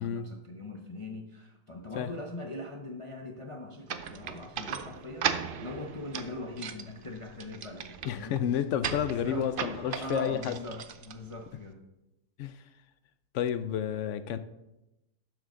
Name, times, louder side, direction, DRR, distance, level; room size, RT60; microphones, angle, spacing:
voice 1, 0.0-8.4 9.0-11.8, left 2 dB, 35° left, 2 dB, 0.5 m, -41 dB
sound 1, 3.9-11.7, right 7 dB, 85° right, 0.4 m, -37 dB
voice 2, 8.1-10.7 12.4-12.6 13.3-14.4, left 9 dB, 70° left, 12 dB, 0.7 m, -30 dB
12.0 x 6.9 x 3.7 m, 0.95 s
omnidirectional pair, 1.7 m